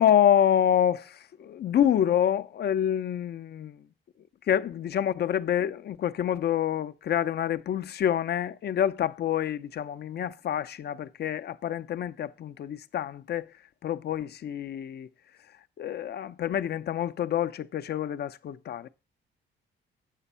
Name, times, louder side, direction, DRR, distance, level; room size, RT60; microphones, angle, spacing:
voice 1, 0.0-3.9 4.5-13.5 13.8-15.1 15.8-18.9, left 10 dB, 55° left, 0.6 m, -27 dB
8.2 x 5.9 x 5.5 m
cardioid pair, 90°, 20 cm